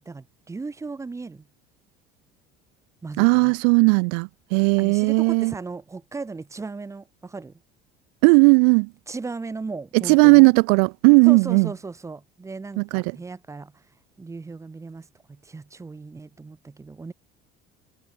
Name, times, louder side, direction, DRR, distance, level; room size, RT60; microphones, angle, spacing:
voice 1, 0.0-1.5 3.0-3.5 4.8-7.5 9.1-10.5 11.2-13.8 14.2-17.1, right 4 dB, 15° right, 4.2 m, -36 dB
voice 2, 3.2-5.5 8.2-8.9 10.1-11.7 12.8-13.0, right 38 dB, 90° right, 0.5 m, -16 dB
cardioid pair, 130°, 19 cm